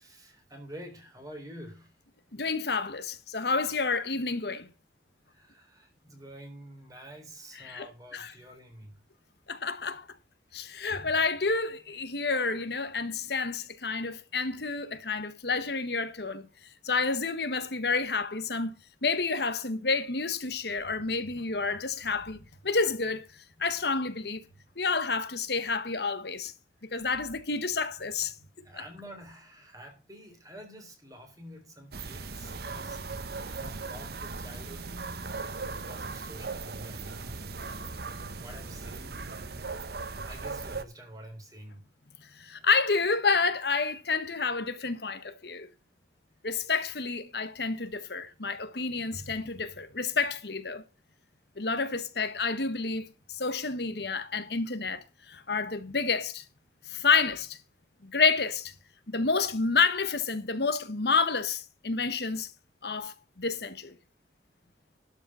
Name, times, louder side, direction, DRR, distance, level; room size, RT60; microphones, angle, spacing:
voice 1, 0.0-2.0 5.3-9.0 10.5-10.7 26.8-27.1 28.6-34.9 35.8-37.4 38.3-39.4 40.2-41.9 42.6-42.7 46.5-46.6, right 1 dB, 20° right, 3.6 m, -48 dB
voice 2, 2.3-4.7 7.6-8.3 9.5-10.1 10.5-16.5 16.8-18.7 19.0-24.4 24.8-26.5 26.9-28.3 42.3-45.7 46.4-50.8 51.6-56.4 56.9-57.6 58.0-58.7 59.1-62.5 62.8-63.9, left 4 dB, 60° left, 1.3 m, -29 dB
sound 1, 31.9-40.8, right 4 dB, 60° right, 1.0 m, -38 dB
12.0 x 5.6 x 6.1 m
head